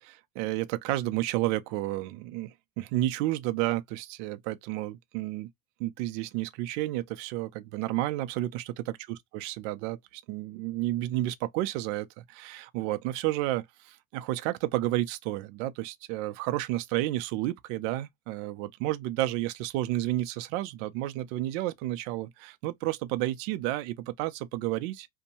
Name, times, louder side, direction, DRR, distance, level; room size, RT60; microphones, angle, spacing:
voice 1, 0.0-5.5 5.8-25.1, right 16 dB, 65° right, 0.5 m, -31 dB
2.7 x 2.2 x 2.7 m
cardioid pair, 155°, 41 cm